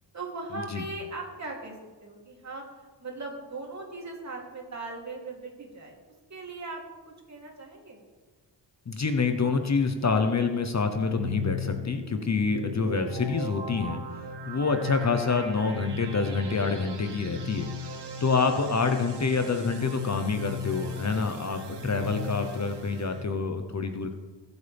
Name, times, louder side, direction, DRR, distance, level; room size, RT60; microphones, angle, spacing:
voice 1, 0.1-2.6 3.0-5.9 6.3-8.0, right 3 dB, 40° right, -1 dB, 3.3 m, -39 dB
voice 2, 8.9-14.0 14.5-17.7 18.2-24.1, left 4 dB, 40° left, 6 dB, 1.0 m, -27 dB
sound 1, 10.7-23.2, left 3 dB, 65° right, 2.0 m, -37 dB
21.0 x 8.2 x 3.6 m, 1.3 s
cardioid pair, 95°, 44 cm